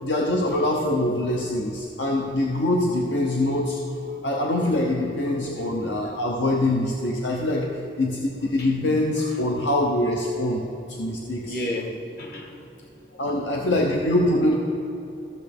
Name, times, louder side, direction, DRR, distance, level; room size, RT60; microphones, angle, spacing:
voice 1, 0.0-3.8 4.2-10.6 10.9-11.5 13.2-14.5, left 1 dB, 75° left, 0 dB, 0.8 m, -24 dB
voice 2, 3.9-4.3 5.2-5.7 6.0-6.2 7.0-7.1 7.5-7.8 8.5-8.8 9.2-9.4 11.5-13.4, left 1 dB, 55° left, 1 dB, 1.4 m, -36 dB
14.5 x 6.6 x 3.6 m, 2.9 s
head